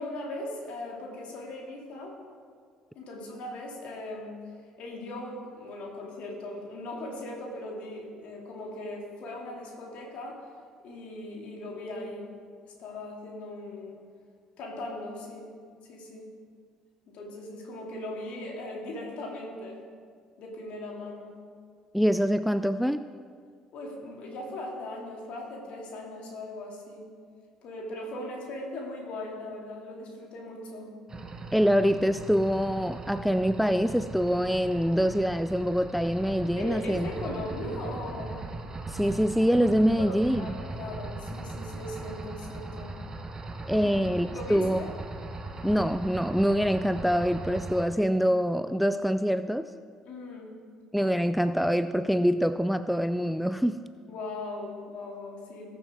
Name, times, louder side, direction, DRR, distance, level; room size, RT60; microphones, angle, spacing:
voice 1, 0.0-2.2 2.9-4.4 4.8-10.5 10.8-12.3 12.6-14.0 14.6-15.5 15.9-16.3 17.1-19.8 20.4-21.4 23.7-27.1 27.6-30.9 36.6-38.4 40.0-43.0 43.8-43.9 44.3-44.9 50.0-50.6 54.1-55.8, left 1 dB, 55° left, -1 dB, 2.6 m, -39 dB
voice 2, 21.9-23.1 31.5-37.3 38.9-40.4 43.7-44.8 45.6-49.7 50.9-53.9, equal, ahead, 12 dB, 0.3 m, -25 dB
sound 1, 31.1-47.8, right 2 dB, 25° right, 1.1 m, -39 dB
20.0 x 7.0 x 3.7 m, 2.1 s
figure-of-eight pair, 55°, 2 cm